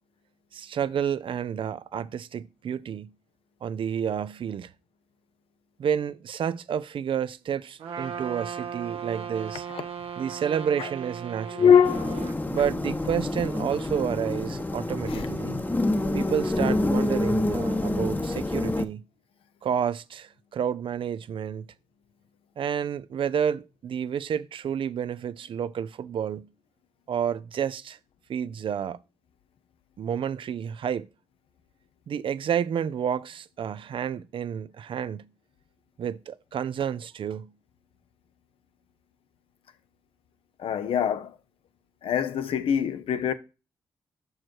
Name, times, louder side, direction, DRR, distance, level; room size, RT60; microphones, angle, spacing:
voice 1, 0.5-3.1 3.6-4.7 5.8-9.7 10.2-11.8 12.5-15.6 16.1-19.0 19.6-21.7 22.6-26.5 27.1-28.0 28.3-29.0 30.0-31.1 32.1-35.3 36.0-37.5, right 8 dB, 65° right, 0.5 m, -30 dB
Trumpet, 7.8-12.4, right 7 dB, 80° right, 1.0 m, -37 dB
voice 2, 11.5-12.2 15.1-15.2 40.6-41.3 42.0-43.3, left 8 dB, 75° left, 0.7 m, -22 dB
sound 1, 11.8-18.8, left 2 dB, 20° left, 0.9 m, -27 dB
6.2 x 4.7 x 4.4 m
supercardioid pair, 50°, 10 cm